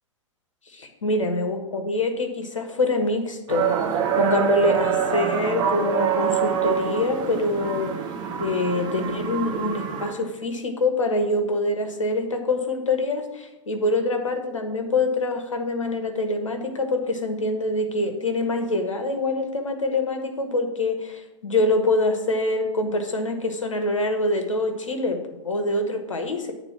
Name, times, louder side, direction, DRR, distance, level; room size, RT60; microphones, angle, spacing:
voice 1, 0.7-3.7 4.1-7.9 8.4-26.5, left 2 dB, 75° left, 5 dB, 1.2 m, -25 dB
sound 1, 3.5-10.1, right 7 dB, 25° right, 0.8 m, -25 dB
9.0 x 3.9 x 6.0 m, 1.0 s
figure-of-eight pair, 105°, 17 cm